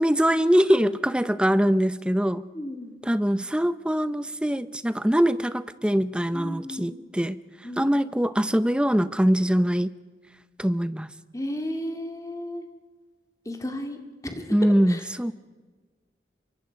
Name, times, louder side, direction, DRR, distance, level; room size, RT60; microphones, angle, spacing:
voice 1, 0.0-2.4 3.0-7.4 7.8-9.9 10.6-11.1 14.5-15.3, equal, 5° right, 14 dB, 0.6 m, -23 dB
voice 2, 2.5-3.0 6.3-7.1 7.6-7.9 11.3-12.7 13.5-14.0 14.2-14.6 14.9-15.0, left 1 dB, 20° left, 5 dB, 2.1 m, -34 dB
26.5 x 24.0 x 5.2 m, 1.4 s
head